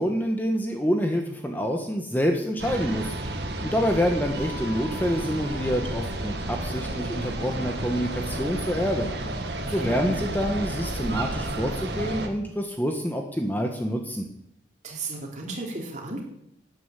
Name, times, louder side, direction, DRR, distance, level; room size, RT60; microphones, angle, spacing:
voice 1, 0.0-9.1 9.6-14.3, equal, 10° left, 3 dB, 1.3 m, -27 dB
sound 1, 2.6-8.1, left 2 dB, 35° left, 3.2 m, -45 dB
sound 2, 2.6-12.3, right 1 dB, 65° right, 1.7 m, -31 dB
voice 2, 9.7-10.4 14.8-16.2, right 2 dB, 40° right, 0 dB, 3.2 m, -35 dB
12.0 x 9.4 x 8.3 m, 0.76 s
head